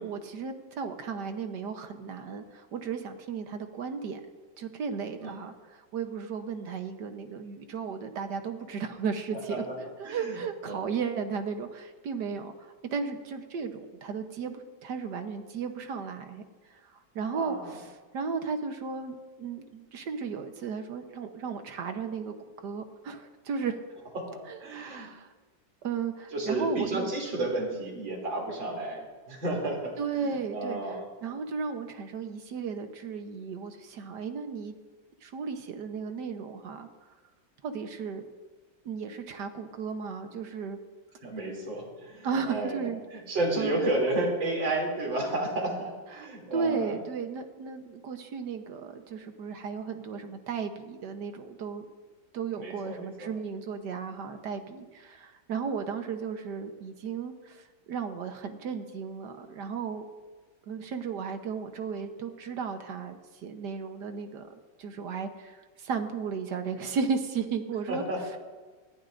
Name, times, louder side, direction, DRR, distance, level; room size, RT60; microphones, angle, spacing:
voice 1, 0.0-4.2 4.6-9.6 10.0-16.4 16.7-22.3 22.6-23.8 24.5-25.3 25.8-27.1 30.0-30.8 31.2-34.7 35.2-36.9 37.6-38.2 38.8-40.8 42.2-43.0 43.5-43.8 46.1-51.8 52.3-60.1 60.7-64.5 64.8-68.0, right 6 dB, 65° right, 7 dB, 1.5 m, -35 dB
voice 2, 9.3-9.8 10.0-10.4 10.6-10.8 17.3-17.8 24.2-25.1 26.3-31.0 41.2-47.0 52.6-53.3 67.9-68.4, right 2 dB, 85° right, -1 dB, 3.7 m, -32 dB
20.0 x 15.0 x 2.6 m, 1.3 s
omnidirectional pair, 2.0 m